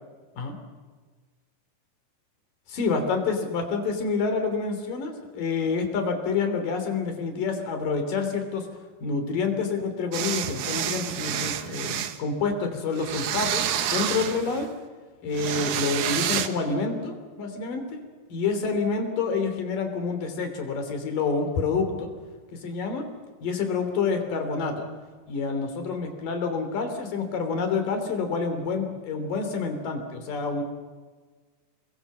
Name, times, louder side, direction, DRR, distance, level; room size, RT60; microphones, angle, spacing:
voice 1, 2.7-8.7 9.0-14.7 15.2-18.0 18.3-22.1 22.6-23.0 23.4-24.9 25.3-30.6, left 4 dB, 70° left, 6 dB, 4.7 m, -28 dB
sound 1, 10.1-12.2 13.0-14.7 15.3-16.5, right 10 dB, 65° right, 2.4 m, -29 dB
28.5 x 21.5 x 7.5 m, 1.4 s
omnidirectional pair, 4.1 m